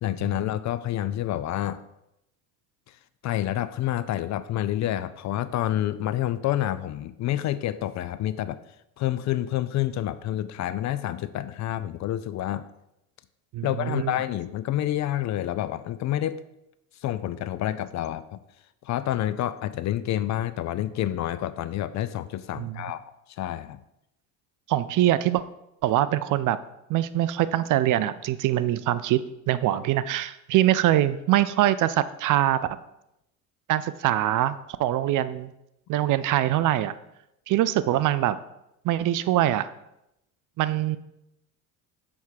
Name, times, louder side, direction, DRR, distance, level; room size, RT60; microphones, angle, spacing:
voice 1, 0.0-1.8 3.2-8.6 9.0-12.6 13.6-16.4 17.0-18.4 18.8-23.0 23.4-23.8, left 13 dB, 40° left, 14 dB, 0.4 m, -28 dB
voice 2, 13.5-14.1 22.6-22.8 24.7-25.4 25.8-26.6 26.9-29.2 29.5-32.6 33.7-35.5 35.9-36.9 37.5-38.4 38.8-39.7 40.6-41.0, right 13 dB, 45° right, 15 dB, 0.5 m, -23 dB
7.2 x 3.6 x 6.4 m, 0.85 s
hypercardioid pair, 70°, 45 cm